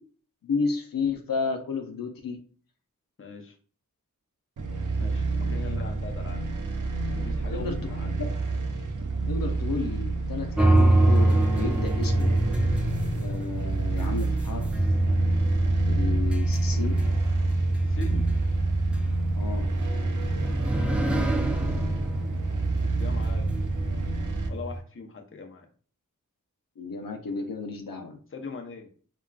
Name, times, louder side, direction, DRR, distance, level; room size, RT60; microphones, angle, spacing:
voice 1, 0.4-2.4 5.4-5.8 7.5-7.8 9.3-12.4 13.2-14.7 15.9-17.0 19.3-19.7 26.8-28.2, left 4 dB, 85° left, 4 dB, 0.5 m, -32 dB
voice 2, 3.2-3.6 4.9-6.4 7.0-8.1 17.8-18.3 20.7-21.8 22.8-23.5 24.5-25.7 28.3-28.9, left 4 dB, 40° left, 2 dB, 0.6 m, -41 dB
sound 1, 4.6-24.5, right 3 dB, 65° right, 0.5 m, -30 dB
sound 2, 10.6-24.8, right 1 dB, 5° right, 0.3 m, -25 dB
3.6 x 2.3 x 2.3 m, 0.43 s
wide cardioid pair, 50°, 33 cm